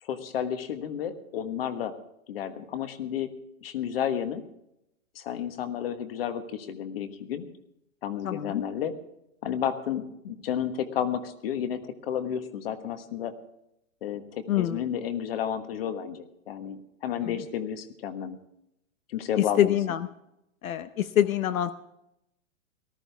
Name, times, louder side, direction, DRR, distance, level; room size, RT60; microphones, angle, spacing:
voice 1, 0.0-1.9 2.3-3.3 3.6-4.4 5.1-7.4 8.0-8.9 9.4-13.3 14.0-18.4 19.1-19.7, left 9 dB, 45° left, 9 dB, 1.4 m, -32 dB
voice 2, 8.2-8.6 14.5-14.8 17.2-17.3 19.6-20.1 20.6-21.7, left 11 dB, 75° left, 12 dB, 0.9 m, -25 dB
19.0 x 13.5 x 3.5 m, 0.82 s
hypercardioid pair, 175°, 42 cm